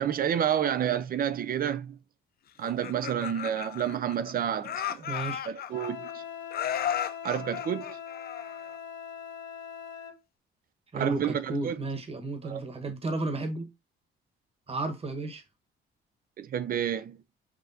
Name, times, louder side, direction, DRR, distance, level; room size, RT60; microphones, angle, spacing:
voice 1, 0.0-2.0 2.6-5.1 5.5-6.2 7.2-8.0 10.9-11.8 12.4-12.6 16.4-17.2, right 9 dB, 45° right, 0.4 m, -29 dB
Laughter, 2.6-4.3 4.6-6.1 6.5-8.8, left 9 dB, 50° left, 0.4 m, -34 dB
voice 2, 5.0-5.5 10.9-13.7 14.7-15.4, right 2 dB, 30° right, 1.2 m, -33 dB
Wind instrument woodwind instrument, 5.7-10.2, left 8 dB, 70° left, 1.0 m, -41 dB
6.0 x 2.5 x 2.6 m
cardioid pair, 90°, 20 cm